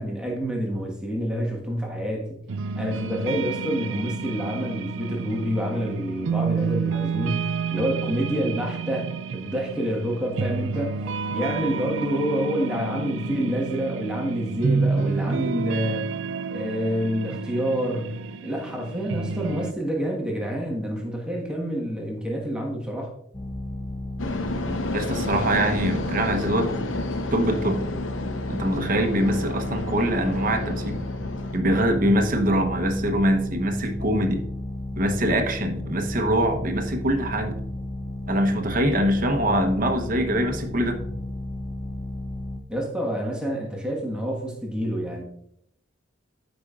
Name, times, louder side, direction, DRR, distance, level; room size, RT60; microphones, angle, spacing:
voice 1, 0.0-2.4 2.7-11.0 11.3-16.1 16.5-23.1 42.7-45.2, equal, 5° right, 1.4 m, -28 dB
sound 1, 2.5-19.7, right 5 dB, 75° right, 0.4 m, -30 dB
sound 2, 23.3-42.6, left 1 dB, 20° left, 0.5 m, -33 dB
sound 3, 24.2-31.6, left 2 dB, 85° left, 0.8 m, -31 dB
voice 2, 24.9-26.7 27.3-27.8 28.5-31.1 31.5-34.4 34.9-37.5 38.3-41.0, right 1 dB, 45° right, 0.9 m, -23 dB
13.0 x 5.2 x 2.4 m
head